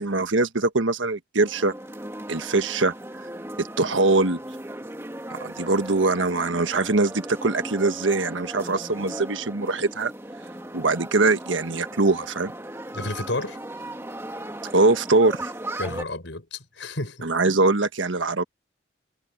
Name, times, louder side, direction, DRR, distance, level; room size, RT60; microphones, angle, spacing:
voice 1, 0.0-1.7 2.3-2.9 3.6-4.4 5.3-10.1 10.7-12.5 14.6-15.5 17.2-18.4, right 3 dB, 85° right, 1.4 m, -22 dB
sound 1, 1.4-16.0, right 1 dB, 15° right, 2.0 m, -37 dB
voice 2, 12.9-13.6 15.8-17.3, left 2 dB, 75° left, 4.7 m, -31 dB
head